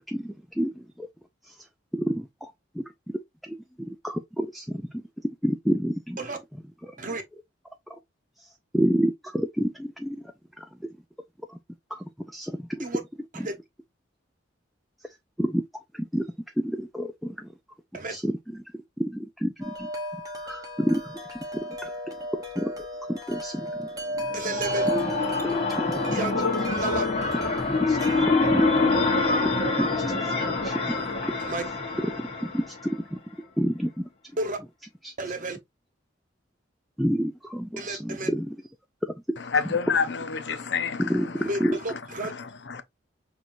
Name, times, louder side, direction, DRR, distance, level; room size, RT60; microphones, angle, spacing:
voice 1, 0.1-1.1 1.4-1.6 1.9-2.8 3.4-3.6 3.9-5.0 5.4-6.2 6.8-6.9 8.4-10.2 10.6-10.7 11.5-11.6 11.9-12.8 13.4-13.5 15.4-16.3 16.6-17.5 18.1-18.6 19.0-19.9 20.4-21.2 21.8-21.9 22.6-22.7 23.1-23.9 25.5-25.6 27.8-28.7 29.4-30.4 30.6-30.8 31.2-31.3 31.6-32.1 32.4-33.2 33.6-34.1 35.0-35.1 37.0-38.6 39.5-39.6 41.0-41.8, equal, ahead, 0.3 m, -29 dB
Wind chime, 19.6-28.3, equal, 20° right, 1.0 m, -34 dB
sound 1, 24.2-33.0, left 3 dB, 35° left, 1.1 m, -26 dB
voice 2, 24.3-24.9 26.1-26.3 26.7-27.1 31.4-31.6 34.4-34.6 35.2-35.6 37.8-38.3 41.4-42.3, right 2 dB, 45° right, 1.0 m, -32 dB
voice 3, 39.5-41.0 42.3-42.8, left 5 dB, 65° left, 0.6 m, -27 dB
6.0 x 2.7 x 2.6 m
head